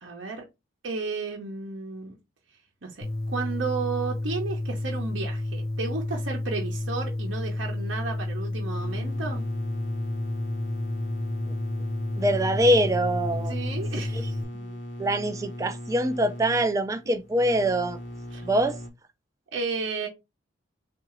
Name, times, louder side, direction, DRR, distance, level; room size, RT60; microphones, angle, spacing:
voice 1, 0.0-0.4 0.8-2.1 2.8-9.4 13.5-14.4 18.3-18.4 19.5-20.1, right 4 dB, 70° right, 0.8 m, -33 dB
sound 1, 3.0-14.4, left 1 dB, 50° left, 0.4 m, -31 dB
sound 2, 8.8-18.9, equal, 65° left, 0.9 m, -39 dB
voice 2, 12.2-13.5 14.1-14.3 14.5-14.6 15.0-18.0 18.4-18.8, right 1 dB, 15° right, 0.3 m, -24 dB
3.7 x 2.5 x 3.0 m
head